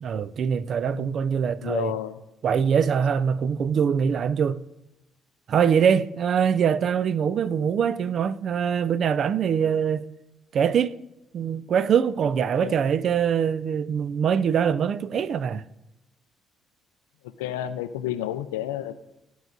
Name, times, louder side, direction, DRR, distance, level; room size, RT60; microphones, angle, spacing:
voice 1, 0.0-1.9 2.4-4.6 5.5-10.0 10.5-11.0 11.3-15.6, right 7 dB, 60° right, 0.3 m, -23 dB
voice 2, 1.6-2.2 12.6-12.8 17.4-18.9, left 12 dB, 90° left, 0.3 m, -30 dB
13.5 x 4.7 x 2.6 m
hypercardioid pair, 50°, 0 cm